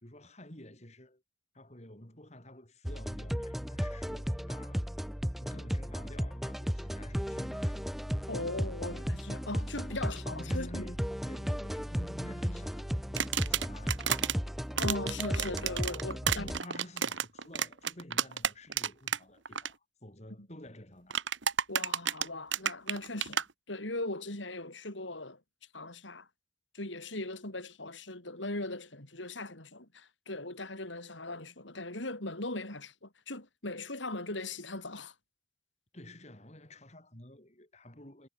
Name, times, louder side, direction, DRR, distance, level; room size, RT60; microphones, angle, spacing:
voice 1, 0.0-1.2 1.5-4.9 5.4-7.9 9.8-14.3 16.3-21.2 35.9-38.3, left 1 dB, 35° left, 4.9 m, -50 dB
sound 1, 2.8-16.6, equal, ahead, 0.6 m, -35 dB
voice 2, 8.3-10.9 14.8-16.5 20.4-20.5 21.7-23.4 23.7-25.4 25.7-26.3 26.7-35.1, left 2 dB, 75° left, 5.3 m, -39 dB
sound 2, 13.2-14.3 14.8-19.2 19.5-19.7 21.1-23.4, right 8 dB, 75° right, 1.9 m, -31 dB
head